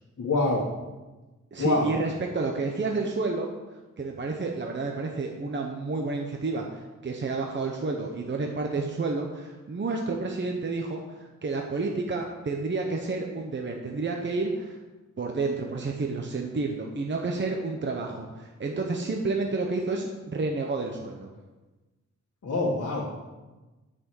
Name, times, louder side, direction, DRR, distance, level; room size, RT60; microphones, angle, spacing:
voice 1, 0.2-0.6 1.6-1.9 22.4-23.1, left 2 dB, 55° left, -6 dB, 1.9 m, -25 dB
voice 2, 1.5-3.5 4.0-14.8 15.2-21.3, right 3 dB, 40° right, 2 dB, 1.0 m, -30 dB
9.7 x 6.3 x 7.8 m, 1.2 s
wide cardioid pair, 160°, 30 cm